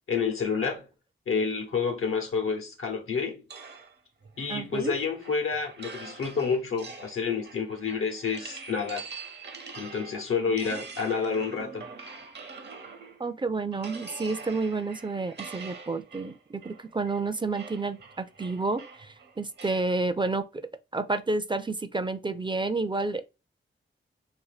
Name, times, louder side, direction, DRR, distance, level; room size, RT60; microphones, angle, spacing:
voice 1, 0.1-0.9 1.3-3.4 4.4-9.1 9.8-11.9, left 5 dB, 85° left, 0.9 m, -29 dB
sound 1, 3.5-13.3 13.7-19.9, right 4 dB, 55° right, 0.7 m, -45 dB
voice 2, 4.5-5.0 10.6-10.8 13.2-20.7 20.9-23.3, right 3 dB, 25° right, 0.4 m, -30 dB
2.6 x 2.6 x 4.0 m
cardioid pair, 60°, 21 cm